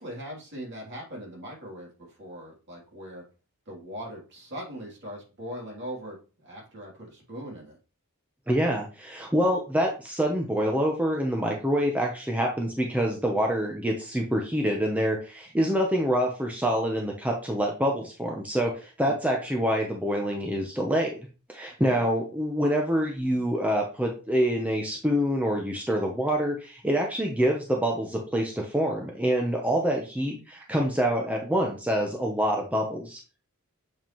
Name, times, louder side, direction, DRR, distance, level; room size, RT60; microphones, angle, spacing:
voice 1, 0.0-3.2 3.7-7.8 19.1-19.2 21.9-22.1, equal, 50° right, -3 dB, 3.0 m, -40 dB
voice 2, 8.5-21.2 21.5-33.2, equal, 5° right, 0 dB, 0.8 m, -26 dB
7.3 x 4.8 x 3.0 m, 0.35 s
head